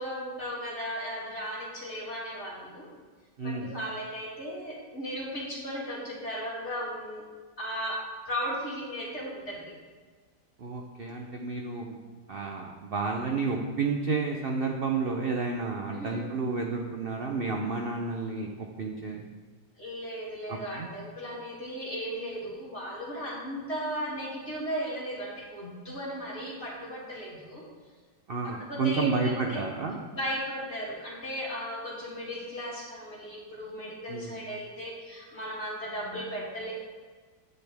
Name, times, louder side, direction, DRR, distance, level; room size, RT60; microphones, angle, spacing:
voice 1, 0.0-2.9 3.4-7.2 7.6-9.7 15.9-16.3 19.8-27.6 28.4-29.7 30.1-36.7, equal, 35° left, -7 dB, 3.0 m, -36 dB
voice 2, 3.4-3.7 10.6-12.0 12.3-19.3 20.5-20.9 28.3-30.0 34.1-34.4, right 4 dB, 55° right, 1 dB, 0.6 m, -31 dB
10.0 x 9.3 x 3.5 m, 1.5 s
omnidirectional pair, 1.9 m